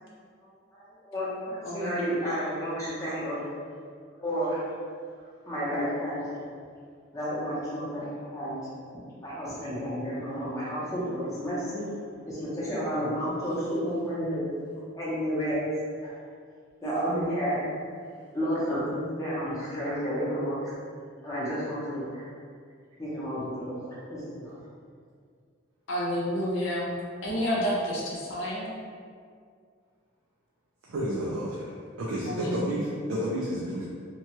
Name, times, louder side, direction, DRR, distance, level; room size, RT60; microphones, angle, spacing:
voice 1, 0.7-3.4 4.2-4.7 5.5-6.4 7.1-8.6 9.2-11.9 12.3-14.4 14.9-15.7 16.0-16.2 16.8-17.6 18.3-20.7 21.2-22.2 23.0-24.5, equal, 15° left, -9 dB, 0.7 m, -31 dB
voice 2, 25.9-26.9 27.2-28.7 32.3-32.7, equal, 65° left, -4 dB, 0.6 m, -29 dB
voice 3, 30.9-33.8, equal, 85° right, -5 dB, 0.4 m, -31 dB
2.9 x 2.3 x 2.8 m, 2.1 s
head